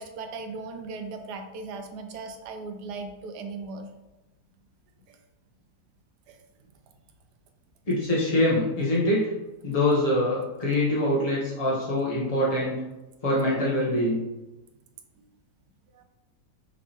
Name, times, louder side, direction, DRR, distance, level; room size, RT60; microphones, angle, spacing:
voice 1, 0.0-3.9 5.1-5.2 6.3-6.4 15.9-16.0, right 3 dB, 75° right, 6 dB, 1.1 m, -38 dB
voice 2, 7.9-9.3 9.6-12.8 13.2-14.2, left 1 dB, 35° left, -6 dB, 0.6 m, -24 dB
5.5 x 3.1 x 2.8 m, 1.0 s
omnidirectional pair, 1.8 m